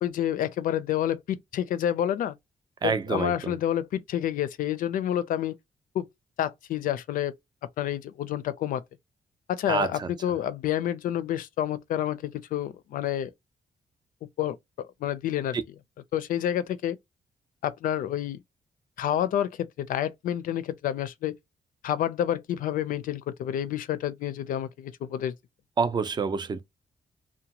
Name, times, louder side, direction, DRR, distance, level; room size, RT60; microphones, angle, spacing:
voice 1, 0.0-2.4 2.8-5.5 5.9-6.1 6.4-7.4 7.8-8.8 9.5-13.3 14.4-15.6 16.1-17.0 17.6-18.4 19.0-21.3 21.8-25.4, left 11 dB, 90° left, 0.4 m, -29 dB
voice 2, 2.8-3.5 9.7-10.1 15.5-15.6 25.8-26.6, right 5 dB, 30° right, 0.5 m, -27 dB
2.8 x 2.1 x 2.8 m
cardioid pair, 130°, 14 cm